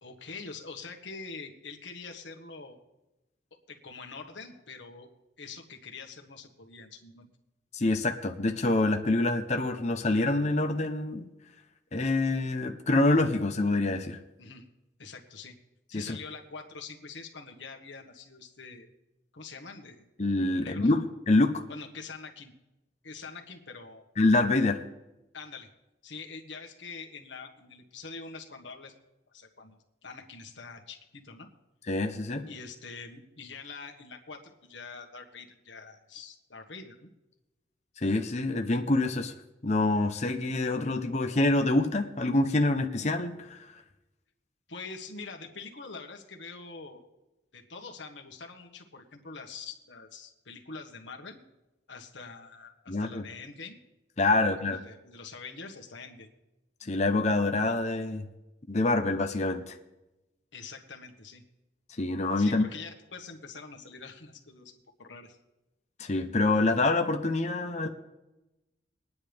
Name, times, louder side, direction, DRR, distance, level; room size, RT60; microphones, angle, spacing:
voice 1, 0.0-2.8 3.7-5.1 5.4-7.3 14.4-14.7 15.0-15.6 15.9-18.9 19.3-20.0 20.5-20.9 21.7-22.5 23.0-24.0 25.3-25.7 26.0-28.9 29.3-29.8 30.0-31.5 32.5-37.1 44.7-47.0 47.5-51.4 51.9-53.8 54.5-56.3 60.5-61.4 62.4-65.4, left 4 dB, 80° left, 3 dB, 1.6 m, -44 dB
voice 2, 7.7-11.3 11.9-14.2 15.9-16.2 20.2-21.7 24.2-24.8 31.9-32.5 38.0-39.3 39.6-43.7 52.9-53.2 54.2-54.8 56.8-58.3 58.7-59.8 62.0-62.6 66.0-67.9, left 2 dB, 35° left, 5 dB, 0.8 m, -26 dB
21.5 x 9.8 x 3.5 m, 0.98 s
head